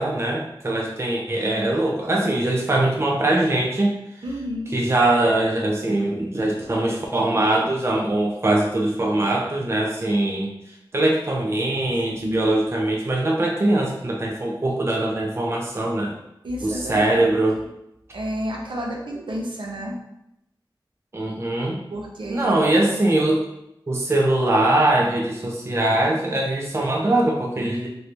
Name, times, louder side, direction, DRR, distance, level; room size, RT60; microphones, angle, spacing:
voice 1, 0.0-3.9 4.7-10.5 10.9-16.1 16.6-17.6 21.1-21.8 22.3-23.5 23.9-27.9, right 1 dB, 30° right, -1 dB, 0.4 m, -22 dB
voice 2, 4.2-4.8 12.1-12.5 16.4-17.6 18.1-20.0 21.9-22.7, equal, 70° right, -2 dB, 0.7 m, -31 dB
3.2 x 2.6 x 3.0 m, 0.82 s
wide cardioid pair, 70°, 9 cm